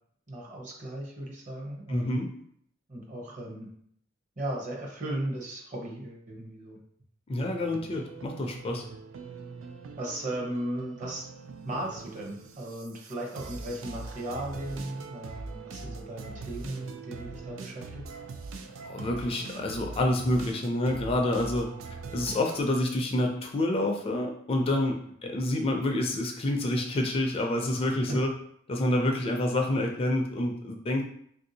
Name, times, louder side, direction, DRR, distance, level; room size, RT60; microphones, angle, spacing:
voice 1, 0.3-2.2 2.9-3.7 4.4-6.8 10.0-11.3 11.6-18.0 25.2-25.3, right 1 dB, 40° right, -2 dB, 0.8 m, -36 dB
voice 2, 1.9-2.3 7.3-8.8 18.8-21.7 22.1-28.3 28.7-31.0, left 1 dB, 30° left, 2 dB, 0.4 m, -28 dB
sound 1, 7.4-22.6, right 4 dB, 85° right, 0.4 m, -42 dB
3.2 x 2.6 x 2.7 m, 0.67 s
head